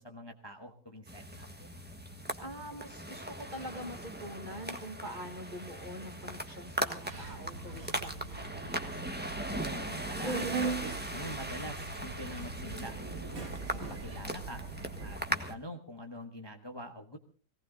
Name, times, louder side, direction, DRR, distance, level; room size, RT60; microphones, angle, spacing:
voice 1, 0.0-1.5 9.5-10.4 11.1-13.0 13.7-14.6 15.0-17.2, equal, 15° left, 5 dB, 1.2 m, -45 dB
sound 1, 1.1-15.5, right 1 dB, 5° right, 1.2 m, -39 dB
voice 2, 2.4-8.6, equal, 25° right, 5 dB, 2.0 m, -44 dB
Subway metro underground, 7.0-15.1, right 4 dB, 55° right, 2.6 m, -40 dB
19.0 x 18.0 x 3.9 m, 0.39 s
omnidirectional pair, 1.8 m